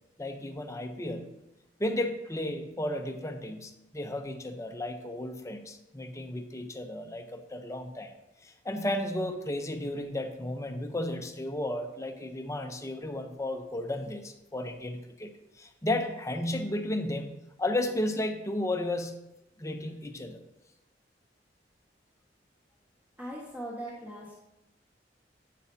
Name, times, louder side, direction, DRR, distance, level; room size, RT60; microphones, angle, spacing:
voice 1, 0.2-1.3 1.8-8.1 8.4-15.3 15.6-19.3 19.6-20.4, left 1 dB, 15° left, 5 dB, 0.8 m, -33 dB
voice 2, 23.2-24.3, right 1 dB, 10° right, -5 dB, 1.5 m, -39 dB
11.0 x 8.3 x 2.8 m, 0.89 s
head